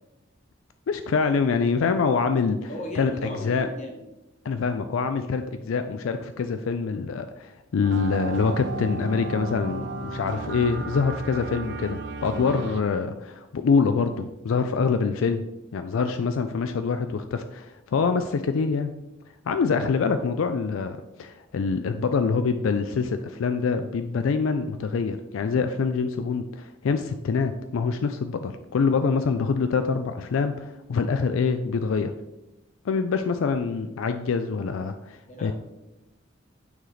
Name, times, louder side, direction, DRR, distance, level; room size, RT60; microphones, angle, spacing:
voice 1, 0.9-2.7 2.9-3.7 4.4-15.5 15.7-18.9 19.5-32.1 32.8-35.5, left 5 dB, 80° left, 8 dB, 0.4 m, -25 dB
voice 2, 2.7-4.1 35.3-35.5, left 1 dB, 35° left, 0 dB, 1.4 m, -36 dB
sound 1, 7.8-12.8, right 2 dB, 60° right, 0.5 m, -34 dB
9.2 x 3.3 x 3.9 m, 0.95 s
head